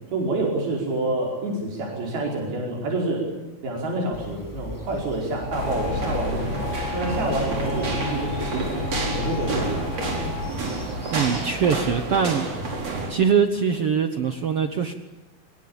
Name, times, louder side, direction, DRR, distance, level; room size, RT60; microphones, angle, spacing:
voice 1, 0.1-3.3 3.6-8.7 9.2-10.1, right 2 dB, 85° right, -1 dB, 6.9 m, -27 dB
sound 1, 4.1-12.2, left 1 dB, 10° left, 0.9 m, -38 dB
sound 2, 5.5-10.5, left 5 dB, 65° left, 1.4 m, -33 dB
sound 3, 5.5-13.1, right 3 dB, 40° right, 6.0 m, -30 dB
voice 2, 11.1-12.4 13.1-14.9, right 6 dB, 65° right, 8 dB, 1.4 m, -22 dB
25.5 x 22.0 x 8.8 m, 1.1 s
omnidirectional pair, 4.2 m